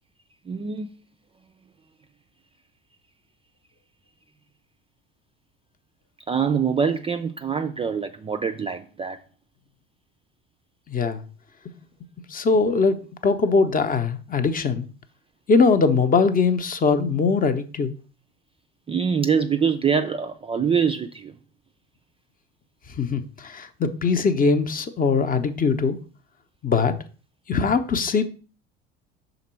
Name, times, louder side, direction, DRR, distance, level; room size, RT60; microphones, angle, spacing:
voice 1, 0.5-0.9 6.3-9.2 18.9-21.3, right 6 dB, 20° right, 0.4 m, -24 dB
voice 2, 10.9-11.2 12.3-14.9 15.5-17.9 23.0-26.0 26.6-26.9 27.5-28.3, left 4 dB, 25° left, 0.8 m, -21 dB
5.8 x 3.9 x 4.3 m
hypercardioid pair, 65°, 31 cm